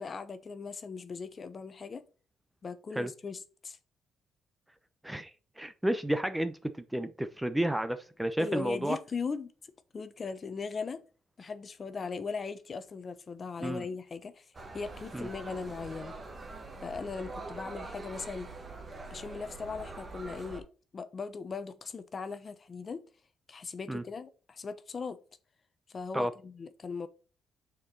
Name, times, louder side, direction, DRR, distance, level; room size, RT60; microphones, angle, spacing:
voice 1, 0.0-2.0 2.6-3.8 8.4-9.5 9.9-11.0 11.4-14.5 14.7-16.1 16.8-18.5 19.1-20.7 20.9-23.0 23.5-25.2 25.9-27.1, left 5 dB, 40° left, 0.8 m, -39 dB
voice 2, 5.6-9.0 13.6-13.8 15.1-15.3 23.9-24.0 26.1-26.3, right 1 dB, 5° right, 0.7 m, -31 dB
sound 1, 14.5-20.6, right 3 dB, 30° right, 1.6 m, -44 dB
6.3 x 4.6 x 4.2 m
cardioid pair, 90°, 0 cm